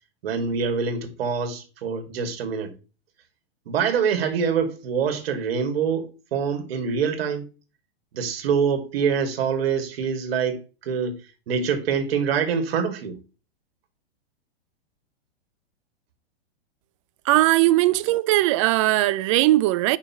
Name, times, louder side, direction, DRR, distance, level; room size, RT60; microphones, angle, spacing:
voice 1, 0.2-2.7 3.7-7.5 8.1-10.6 10.9-11.2 11.5-13.2, right 6 dB, 65° right, 2.3 m, -25 dB
voice 2, 17.3-20.0, right 17 dB, 30° right, 0.4 m, -19 dB
9.6 x 5.7 x 3.1 m
hypercardioid pair, 140°, 32 cm